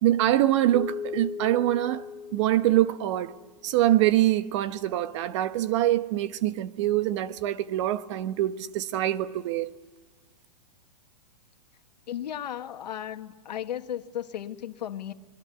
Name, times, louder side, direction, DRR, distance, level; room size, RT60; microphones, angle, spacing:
voice 1, 0.0-2.0 2.3-3.3 3.6-9.7, right 14 dB, 45° right, 1.2 m, -24 dB
Keyboard (musical), 0.7-3.7, left 6 dB, 15° left, 1.0 m, -38 dB
voice 2, 12.1-15.1, left 10 dB, 80° left, 1.7 m, -35 dB
27.0 x 21.5 x 8.2 m
hypercardioid pair, 155°, 21 cm